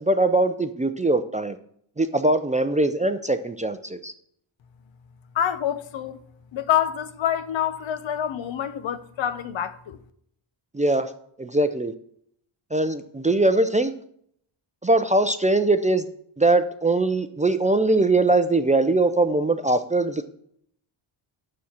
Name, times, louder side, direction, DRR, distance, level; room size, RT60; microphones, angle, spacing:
voice 1, 0.0-1.6 2.0-4.1 10.7-11.1 11.4-11.9 12.7-13.9 14.8-16.1 16.4-20.3, right 2 dB, 15° right, 0.4 m, -21 dB
voice 2, 5.3-6.2 6.5-10.0, left 10 dB, 65° left, 0.9 m, -26 dB
6.9 x 6.4 x 7.2 m
cardioid pair, 105°, 49 cm